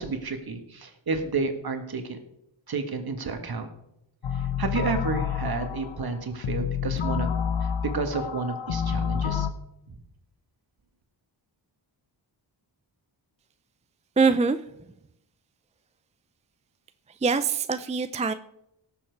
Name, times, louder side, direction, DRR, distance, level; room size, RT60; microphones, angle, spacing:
voice 1, 0.0-2.2 2.7-3.7 4.4-7.3 7.6-9.5 9.9-10.0, right 4 dB, 50° right, 7 dB, 1.8 m, -31 dB
sound 1, 4.2-9.5, left 8 dB, 70° left, 1.0 m, -29 dB
voice 2, 14.2-14.9 17.1-18.3, right 4 dB, 15° right, 11 dB, 0.4 m, -24 dB
17.5 x 7.2 x 4.7 m, 0.79 s
wide cardioid pair, 110°, 46 cm